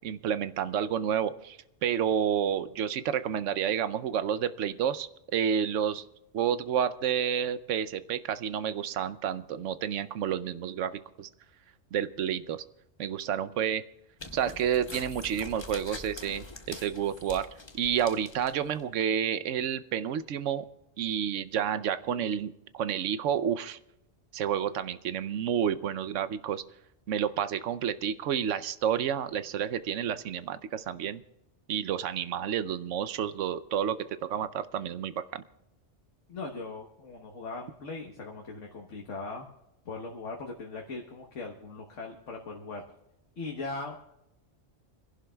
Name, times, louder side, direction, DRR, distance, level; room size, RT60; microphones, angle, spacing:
voice 1, 0.0-6.0 6.3-11.3 11.9-12.6 13.0-13.8 14.3-17.5 17.7-20.7 21.0-23.8 24.3-26.6 27.1-31.2 31.7-35.4, right 8 dB, 85° right, 14 dB, 1.0 m, -30 dB
sound 1, 14.2-18.8, left 2 dB, 25° left, 1.0 m, -44 dB
voice 2, 36.3-39.5 39.8-42.8 43.4-44.0, left 3 dB, 80° left, 1 dB, 1.5 m, -39 dB
29.5 x 11.5 x 2.3 m, 0.90 s
omnidirectional pair, 1.2 m